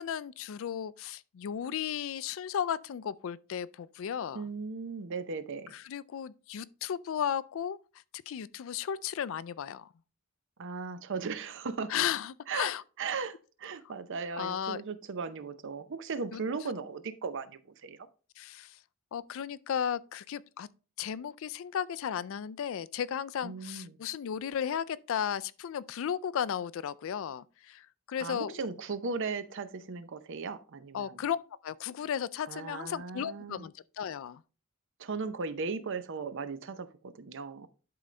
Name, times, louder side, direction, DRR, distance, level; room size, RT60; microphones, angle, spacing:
voice 1, 0.0-4.4 5.7-7.8 8.3-9.9 11.9-12.8 14.4-14.8 16.3-16.4 18.4-18.8 19.1-20.7 21.0-28.5 30.9-34.4, left 8 dB, 65° left, 0.4 m, -35 dB
voice 2, 4.3-5.7 10.6-11.9 12.5-12.7 13.0-18.1 23.4-24.0 28.2-31.2 32.5-33.7 35.0-37.7, right 4 dB, 60° right, 0.6 m, -37 dB
11.5 x 3.9 x 3.2 m
head